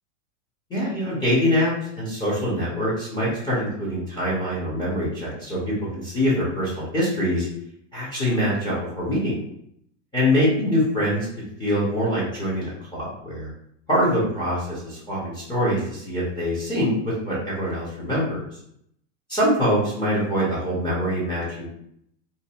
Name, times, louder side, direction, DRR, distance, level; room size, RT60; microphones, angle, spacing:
voice 1, 0.7-7.5 7.9-9.4 10.1-11.3 11.6-13.5 13.9-16.9 17.2-18.5 19.3-21.7, equal, 10° left, -9 dB, 0.6 m, -24 dB
2.6 x 2.3 x 2.8 m, 0.72 s
supercardioid pair, 155°, 39 cm